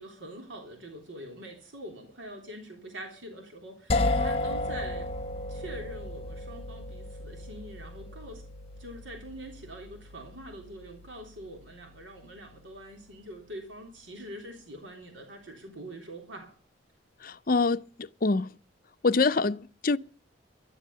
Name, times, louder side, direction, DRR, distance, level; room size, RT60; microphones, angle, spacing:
voice 1, 0.0-5.1 5.5-8.4 8.8-16.5, right 1 dB, 85° right, 3.5 m, -44 dB
sound 1, 3.9-13.7, left 2 dB, 30° left, 1.3 m, -34 dB
voice 2, 17.2-17.8 18.2-18.5 19.0-20.0, left 3 dB, 50° left, 0.6 m, -25 dB
12.5 x 11.0 x 6.9 m
head